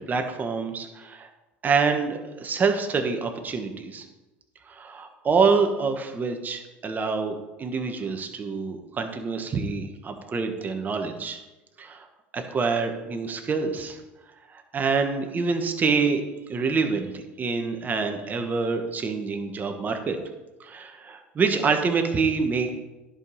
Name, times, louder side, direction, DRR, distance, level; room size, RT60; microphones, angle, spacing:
voice 1, 0.1-1.3 1.6-4.0 4.7-11.4 11.8-12.1 12.3-14.0 14.5-16.2 16.5-20.2 20.6-22.7, right 4 dB, 30° right, 6 dB, 1.4 m, -26 dB
10.5 x 5.1 x 5.6 m, 1.1 s
supercardioid pair, 90°, 6 cm